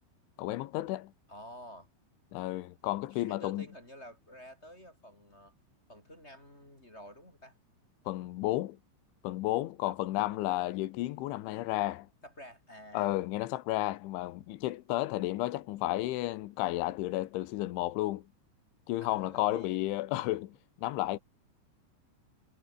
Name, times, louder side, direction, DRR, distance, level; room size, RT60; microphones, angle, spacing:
voice 1, 0.4-1.1 2.3-3.7 8.1-8.8 9.2-12.1 12.9-18.3 18.9-21.2, left 16 dB, 85° left, 3.6 m, -32 dB
voice 2, 1.3-1.9 3.1-5.5 5.9-7.6 9.9-10.6 12.2-13.1 19.0-19.8, equal, 15° left, 6.1 m, -50 dB
omnidirectional pair, 5.3 m